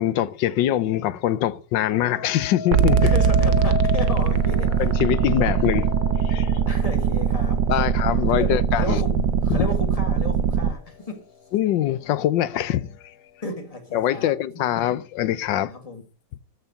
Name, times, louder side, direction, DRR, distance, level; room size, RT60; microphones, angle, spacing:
voice 1, 0.0-3.1 4.8-5.9 6.2-6.5 7.7-9.0 9.5-9.7 11.5-12.9 13.9-15.7, left 12 dB, 85° left, 1.4 m, -23 dB
sound 1, 1.9-11.1 11.6-12.1, left 6 dB, 60° left, 1.5 m, -35 dB
sound 2, 2.7-10.7, right 7 dB, 80° right, 1.4 m, -21 dB
voice 2, 3.0-4.7 6.7-7.9 8.3-11.2 13.4-14.7 15.7-16.0, left 2 dB, 20° left, 1.7 m, -34 dB
13.0 x 4.6 x 8.0 m
omnidirectional pair, 1.9 m